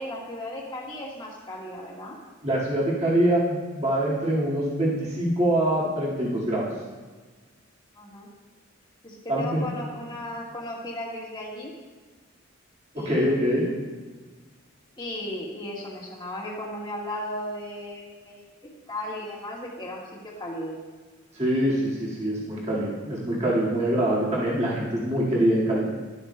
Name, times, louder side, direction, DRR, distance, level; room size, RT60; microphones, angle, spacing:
voice 1, 0.0-2.2 7.9-8.3 9.0-11.7 12.9-13.6 15.0-18.4 18.9-20.7, left 1 dB, 20° left, -4 dB, 1.6 m, -35 dB
voice 2, 2.4-6.7 9.3-9.7 13.0-13.7 21.3-25.8, right 1 dB, 35° right, -6 dB, 1.9 m, -24 dB
11.5 x 8.4 x 2.2 m, 1.4 s
head